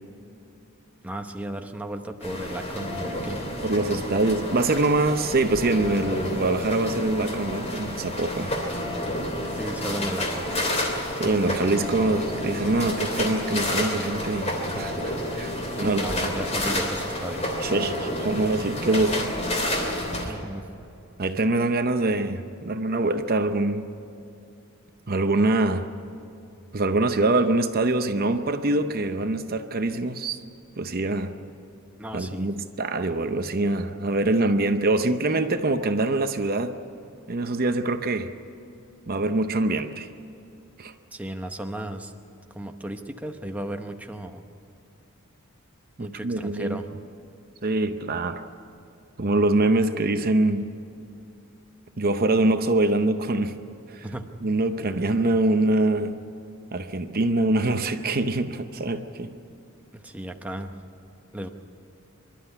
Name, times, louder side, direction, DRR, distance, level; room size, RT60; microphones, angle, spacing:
voice 1, 1.0-3.4 9.5-10.5 15.7-17.5 20.1-20.7 32.0-32.5 41.1-42.1 42.5-44.4 46.0-46.9 54.0-54.3 59.9-60.7 61.3-61.5, right 1 dB, 5° right, 4 dB, 0.9 m, -34 dB
sound 1, 2.2-20.3, left 1 dB, 30° left, 3.1 m, -30 dB
voice 2, 3.6-8.5 11.2-15.6 15.8-16.3 17.6-19.3 20.2-20.4 21.2-23.9 25.1-25.9 26.7-30.4 30.8-31.3 32.1-36.7 37.3-38.3 39.1-40.1 40.8-40.9 46.0-46.8 47.6-48.4 49.2-50.7 52.0-53.6 53.9-54.1 54.4-56.2 56.7-59.3, right 2 dB, 40° right, 8 dB, 0.7 m, -24 dB
25.5 x 12.0 x 10.0 m, 2.7 s
head